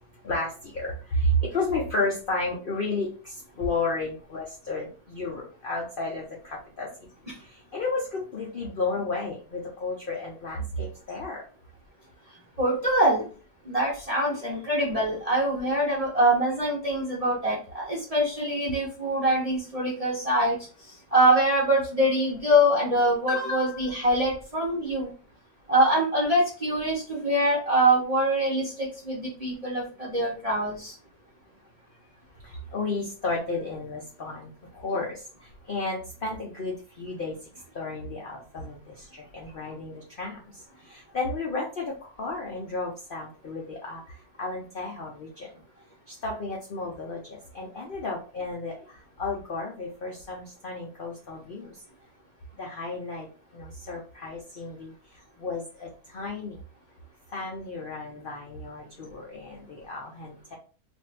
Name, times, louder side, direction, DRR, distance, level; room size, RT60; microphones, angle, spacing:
voice 1, 0.2-6.9 7.7-11.4 32.4-35.2 35.7-37.3 37.7-40.5 40.9-44.0 44.4-45.5 46.1-48.8 49.2-51.7 52.5-53.3 53.5-54.9 55.4-56.6 57.3-60.5, left 2 dB, 60° left, -2 dB, 0.5 m, -32 dB
voice 2, 12.6-13.3 13.7-20.6 21.1-25.1 25.7-30.9, right 1 dB, 35° right, -5 dB, 0.6 m, -24 dB
2.6 x 2.5 x 3.2 m, 0.37 s
omnidirectional pair, 1.7 m